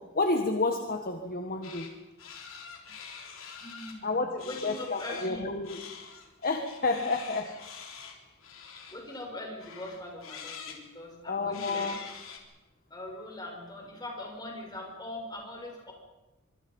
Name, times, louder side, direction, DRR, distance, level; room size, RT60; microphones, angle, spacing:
voice 1, 0.1-1.9 4.0-5.8 6.4-7.5 11.3-12.0, left 3 dB, 45° left, 5 dB, 1.6 m, -30 dB
sound 1, 1.6-1.9 2.2-4.0 4.4-5.3 5.6-9.3 9.6-10.8 11.5-12.4, left 6 dB, 70° left, 3.9 m, -45 dB
voice 2, 3.6-5.5 8.9-11.9 12.9-15.9, left 1 dB, 20° left, 0 dB, 6.6 m, -41 dB
25.5 x 24.5 x 5.5 m, 1.1 s
head